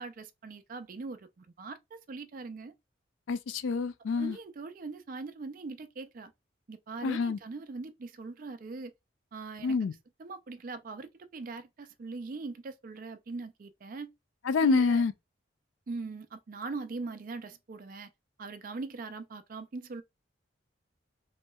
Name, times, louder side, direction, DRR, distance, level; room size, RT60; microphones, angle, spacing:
voice 1, 0.0-2.7 4.2-6.3 6.7-8.9 9.3-9.7 10.2-14.1 14.6-15.0 15.9-18.1 18.4-20.0, right 3 dB, 45° right, 0.4 m, -41 dB
voice 2, 3.3-4.4 7.0-7.4 9.6-9.9 14.5-15.1, left 4 dB, 75° left, 0.3 m, -27 dB
3.1 x 2.8 x 2.2 m
head